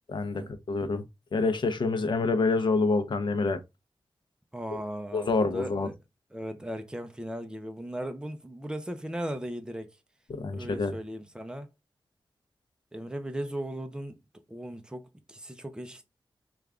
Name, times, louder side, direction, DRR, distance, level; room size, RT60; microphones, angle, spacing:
voice 1, 0.1-1.0 1.3-3.6 4.7-4.8 5.1-5.9 10.4-11.0, left 3 dB, 65° left, 0.6 m, -27 dB
voice 2, 4.5-5.9 6.3-10.0 10.5-11.7 12.9-14.2 14.5-16.1, right 1 dB, 10° right, 0.6 m, -37 dB
3.4 x 2.4 x 3.5 m
wide cardioid pair, 90°, 9 cm